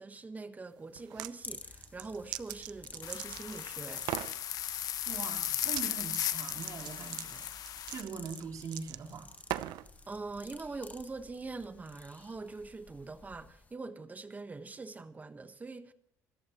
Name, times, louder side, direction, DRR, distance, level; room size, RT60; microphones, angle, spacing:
voice 1, 0.0-4.1 10.1-15.9, right 3 dB, 25° right, 1.3 m, -43 dB
sound 1, 1.0-1.3 1.8-3.6 4.0-4.4 5.7-5.9 6.1-9.9, right 15 dB, 85° right, 0.7 m, -40 dB
sound 2, 1.4-13.7, left 3 dB, 20° left, 1.4 m, -52 dB
sound 3, 3.0-8.0, left 11 dB, 60° left, 0.9 m, -36 dB
voice 2, 5.1-7.5 7.9-9.3, right 5 dB, 55° right, 3.1 m, -42 dB
26.0 x 14.0 x 3.1 m
cardioid pair, 105°, 7 cm